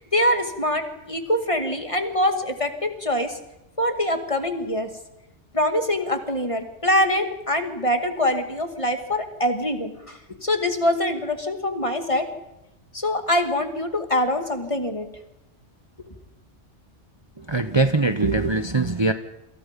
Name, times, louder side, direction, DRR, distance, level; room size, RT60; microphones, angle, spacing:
voice 1, 0.0-3.4 3.8-4.9 5.5-12.3 12.9-15.1, left 1 dB, 25° left, 6 dB, 2.3 m, -24 dB
voice 2, 17.5-19.1, right 3 dB, 25° right, 9 dB, 0.9 m, -21 dB
28.5 x 26.0 x 5.3 m, 0.91 s
omnidirectional pair, 1.3 m